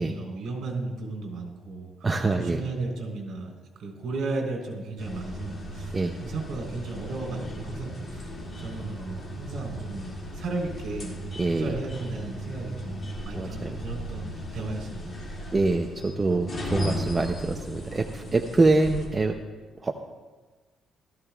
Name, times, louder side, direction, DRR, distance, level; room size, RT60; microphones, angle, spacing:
voice 1, 0.0-2.1 2.4-3.5 3.8-8.3 8.6-11.1 11.5-15.1, right 3 dB, 65° right, 0 dB, 3.7 m, -35 dB
voice 2, 2.0-2.6 5.9-6.1 11.4-11.7 13.3-13.7 15.5-19.4 19.8-19.9, right 3 dB, 20° right, 4 dB, 0.6 m, -25 dB
sound 1, 5.0-19.1, equal, 30° left, 2.3 m, -36 dB
16.0 x 14.0 x 2.4 m, 1.3 s
cardioid pair, 140°, 0 cm